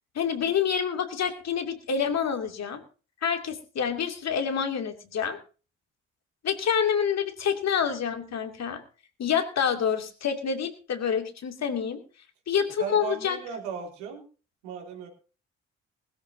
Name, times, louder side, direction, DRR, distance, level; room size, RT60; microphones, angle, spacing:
voice 1, 0.1-2.8 3.2-5.4 6.4-8.8 9.2-12.0 12.5-13.4, left 7 dB, 50° left, 5 dB, 2.6 m, -27 dB
voice 2, 12.8-14.2 14.6-15.1, right 7 dB, 80° right, 2 dB, 3.2 m, -36 dB
20.5 x 13.0 x 2.8 m, 0.36 s
hypercardioid pair, 50°, 33 cm